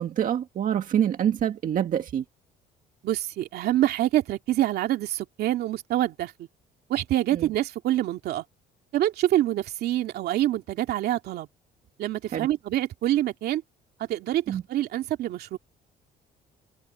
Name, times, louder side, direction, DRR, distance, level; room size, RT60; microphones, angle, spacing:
voice 1, 0.0-2.2 7.3-7.5 12.3-12.5 14.5-14.6, right 9 dB, 50° right, 1.8 m, -26 dB
voice 2, 3.0-6.5 6.9-8.4 8.9-11.5 12.0-13.6 14.0-15.6, right 13 dB, 70° right, 2.5 m, -26 dB
cardioid pair, 110°, 17 cm